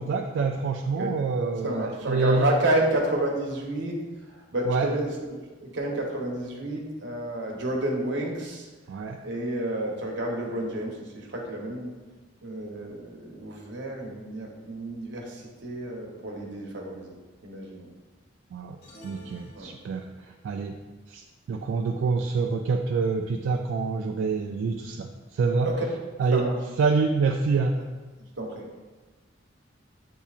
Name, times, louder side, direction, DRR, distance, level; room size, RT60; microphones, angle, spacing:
voice 1, 0.0-2.5 4.7-4.9 8.9-9.2 18.5-20.8 21.1-25.7 26.2-26.5 26.8-27.8, right 4 dB, 85° right, 2 dB, 0.3 m, -27 dB
voice 2, 1.6-8.7 9.2-11.9 12.4-17.2 17.4-17.9 19.5-19.7 25.6-25.9 26.3-26.6 27.8-27.9 28.4-28.7, right 1 dB, 70° right, -1 dB, 0.9 m, -30 dB
sound 1, 18.8-20.4, equal, 60° left, 1.1 m, -50 dB
8.1 x 2.7 x 2.4 m, 1.3 s
head